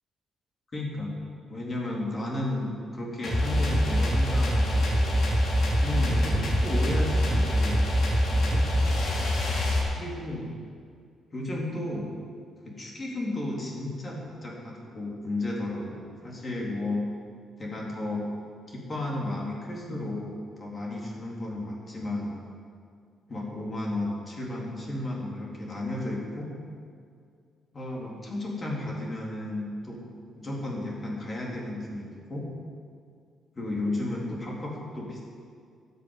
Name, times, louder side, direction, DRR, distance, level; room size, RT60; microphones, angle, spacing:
voice 1, 0.7-1.1 1.5-5.1 5.8-7.8 8.3-8.7 10.0-10.5 11.3-12.1 12.6-17.1 17.6-18.3 18.7-22.4 23.3-26.5 27.7-30.0 30.3-32.5 33.6-35.2, left 2 dB, 35° left, -3 dB, 3.8 m, -33 dB
sound 1, 3.2-9.8, equal, 60° left, 4.0 m, -24 dB
13.0 x 8.3 x 8.4 m, 2.2 s
cardioid pair, 90°, 0 cm